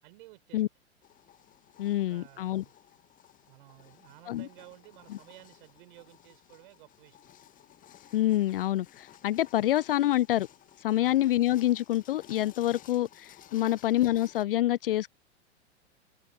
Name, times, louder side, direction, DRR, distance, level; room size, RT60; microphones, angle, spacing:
voice 1, 0.0-0.6 2.1-2.7 3.5-7.2 11.0-11.2 13.6-13.8, right 21 dB, 50° right, 6.9 m, -54 dB
sound 1, 1.0-14.4, left 12 dB, 25° left, 1.8 m, -56 dB
voice 2, 1.8-2.6 4.3-4.5 5.1-5.2 8.1-10.5 10.8-15.1, left 14 dB, 55° left, 0.6 m, -27 dB
figure-of-eight pair, 100°, 34 cm